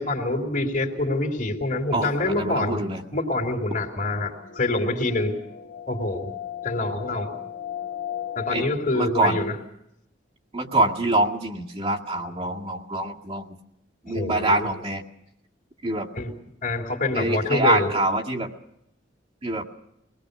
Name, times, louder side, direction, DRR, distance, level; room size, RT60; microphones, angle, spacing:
voice 1, 0.0-2.8 3.1-5.4 5.9-6.3 6.6-7.3 8.3-9.5 14.1-14.7 16.2-16.3 16.6-17.9, left 2 dB, 45° left, 1 dB, 3.2 m, -26 dB
voice 2, 1.9-3.0 8.5-8.7 8.9-9.4 10.5-13.6 14.0-15.0 15.8-16.1 17.1-18.5 19.4-19.6, right 2 dB, 35° right, -1 dB, 2.1 m, -25 dB
sound 1, 3.5-8.8, left 10 dB, 75° left, 1.6 m, -37 dB
23.5 x 19.5 x 6.7 m, 0.78 s
head